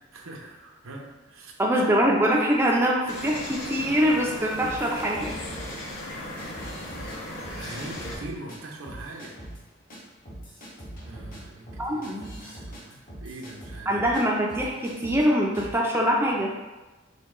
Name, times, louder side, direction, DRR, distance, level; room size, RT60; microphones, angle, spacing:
voice 1, 0.1-1.5 7.5-9.4 11.0-13.9, right 2 dB, 85° right, 0 dB, 0.7 m, -42 dB
voice 2, 1.6-5.4 11.8-12.2 13.9-16.5, equal, 10° right, -2 dB, 0.4 m, -23 dB
sound 1, 3.1-8.2, left 1 dB, 65° left, 0.9 m, -37 dB
sound 2, 4.6-5.7 6.4-7.2 7.4-8.6 8.8-9.6 9.9-10.0 10.2-14.2 14.5-15.2 15.5-15.8, right 1 dB, 45° left, 1.3 m, -41 dB
5.2 x 2.2 x 3.6 m, 1.2 s
head